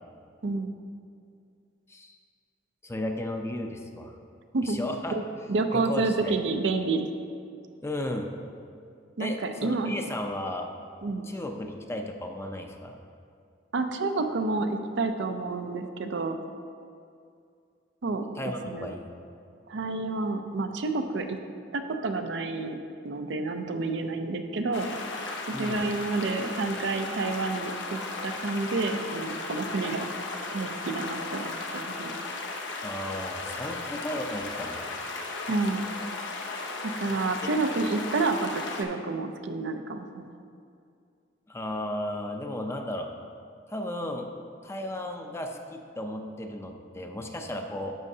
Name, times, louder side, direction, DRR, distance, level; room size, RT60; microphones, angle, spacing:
voice 1, 2.8-4.1 4.6-5.1 5.7-6.3 7.8-8.3 9.2-10.7 11.2-13.0 18.4-19.1 25.5-25.9 32.8-34.9 41.5-43.1 43.7-44.3 44.6-48.0, left 1 dB, 15° left, 3 dB, 0.5 m, -34 dB
voice 2, 5.5-7.1 9.2-9.9 11.0-11.3 13.7-16.4 18.0-18.2 18.7-18.9 19.7-21.4 21.7-22.8 23.0-24.9 25.4-30.1 30.5-32.2 35.5-35.9 36.8-40.3, right 3 dB, 75° right, 6 dB, 0.5 m, -29 dB
sound 1, 24.7-38.8, left 3 dB, 80° left, 0.7 m, -36 dB
11.0 x 6.3 x 2.7 m, 2.3 s
head